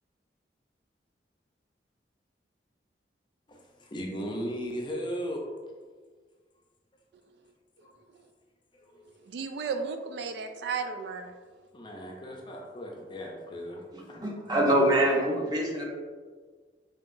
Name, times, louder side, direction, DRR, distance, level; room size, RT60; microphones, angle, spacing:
voice 1, 3.5-5.5 7.8-7.9 8.7-9.1 11.7-14.4, equal, 25° left, 0 dB, 0.5 m, -37 dB
voice 2, 9.3-11.3, right 5 dB, 70° right, 6 dB, 0.3 m, -34 dB
voice 3, 13.9-15.8, right 1 dB, 25° right, -2 dB, 0.7 m, -25 dB
5.6 x 2.8 x 2.5 m, 1.5 s
head